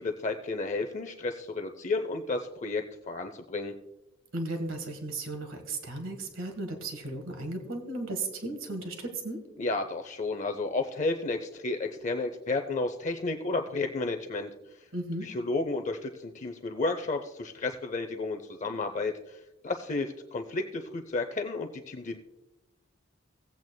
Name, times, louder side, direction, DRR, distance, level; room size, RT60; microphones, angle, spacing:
voice 1, 0.0-3.7 9.6-14.5 15.2-22.2, left 3 dB, 40° left, 6 dB, 0.5 m, -32 dB
voice 2, 4.3-9.4 14.9-15.3, right 2 dB, 85° right, 5 dB, 1.6 m, -35 dB
17.5 x 8.5 x 2.2 m, 0.97 s
head